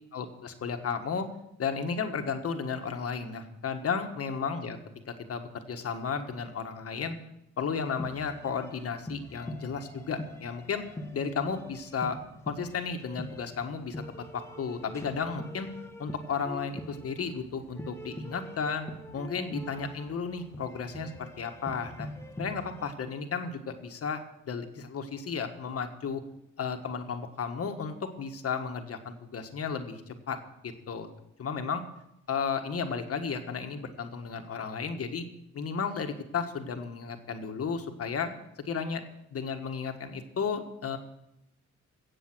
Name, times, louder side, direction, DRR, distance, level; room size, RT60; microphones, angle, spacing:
voice 1, 0.1-1.3 1.6-4.8 5.1-7.2 7.6-10.8 11.1-12.2 12.5-14.0 14.3-15.7 16.0-18.9 19.1-22.1 22.4-24.2 24.5-26.2 26.6-30.4 30.6-31.1 31.4-31.8 32.3-35.2 35.5-38.3 38.6-39.0 39.3-41.0, left 5 dB, 50° left, 6 dB, 1.6 m, -33 dB
sound 1, 7.8-22.9, equal, 10° left, 1.3 m, -43 dB
16.5 x 7.6 x 6.2 m, 0.82 s
cardioid pair, 90°, 30 cm